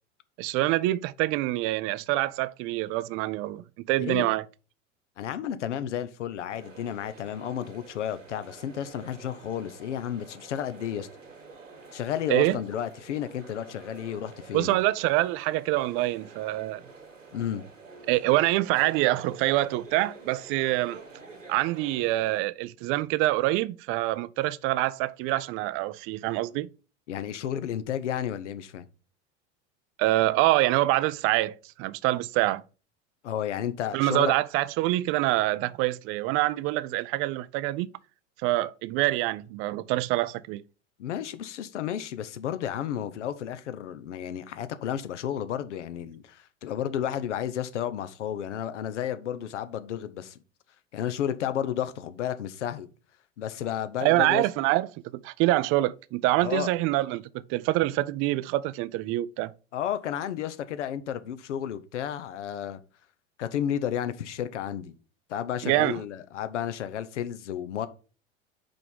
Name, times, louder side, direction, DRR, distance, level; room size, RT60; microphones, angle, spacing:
voice 1, 0.4-4.4 12.3-12.6 14.5-16.8 18.1-21.0 21.5-26.7 30.0-32.6 33.9-37.9 38.4-40.6 54.0-57.2 57.5-59.5 65.6-66.0, right 17 dB, 35° right, 0.4 m, -25 dB
voice 2, 5.2-11.1 11.9-14.8 17.3-17.6 27.1-28.8 33.2-34.3 41.0-50.4 50.9-52.9 53.4-54.4 56.4-56.7 59.7-62.8 63.4-64.9 65.3-67.9, left 10 dB, 70° left, 0.8 m, -32 dB
sound 1, 6.5-22.4, right 4 dB, 85° right, 1.8 m, -49 dB
5.2 x 4.7 x 5.4 m
figure-of-eight pair, 80°, 37 cm